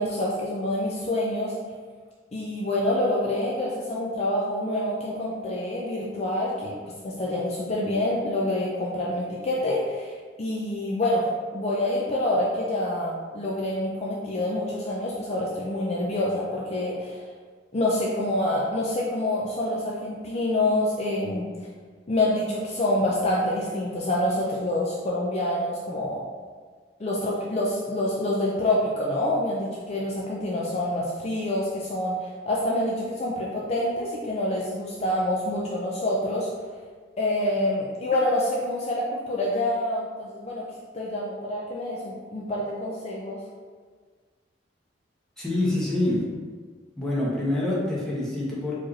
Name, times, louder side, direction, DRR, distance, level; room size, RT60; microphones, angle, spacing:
voice 1, 0.0-1.5 2.3-6.8 7.0-17.2 17.7-21.5 22.1-26.2 27.0-36.7 37.2-40.6 40.9-43.4, left 1 dB, 35° left, -4 dB, 0.5 m, -27 dB
voice 2, 45.4-46.2 47.0-48.7, left 1 dB, 5° left, -8 dB, 1.0 m, -26 dB
4.5 x 3.0 x 3.1 m, 1.5 s
head